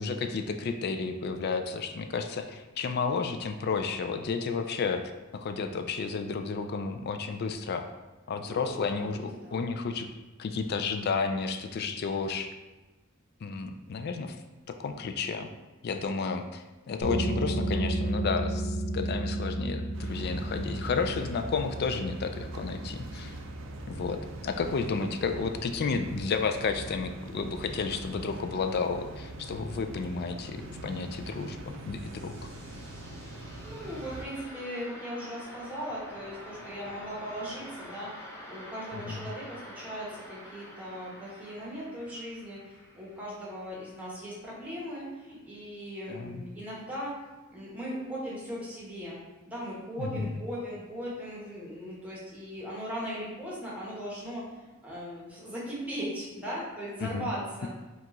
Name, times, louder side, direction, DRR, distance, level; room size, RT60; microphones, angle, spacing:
voice 1, 0.0-5.0 5.3-7.9 8.3-10.1 10.4-12.5 13.4-14.4 14.7-15.5 15.8-23.4 23.9-32.5 38.9-39.3 46.1-46.4 50.0-50.3 57.0-57.3 57.6-57.7, left 4 dB, 45° left, 7 dB, 0.3 m, -32 dB
voice 2, 8.4-9.1 9.4-9.6 33.6-38.1 38.5-42.6 42.9-47.1 47.5-49.2 49.5-57.7, equal, 5° right, -6 dB, 1.1 m, -38 dB
sound 1, 17.0-28.4, right 1 dB, 85° left, 1.1 m, -35 dB
sound 2, 19.9-34.2, right 2 dB, 60° right, 0.5 m, -43 dB
sound 3, 31.6-44.3, equal, 15° left, 0.6 m, -48 dB
4.6 x 2.4 x 3.8 m, 1.1 s
head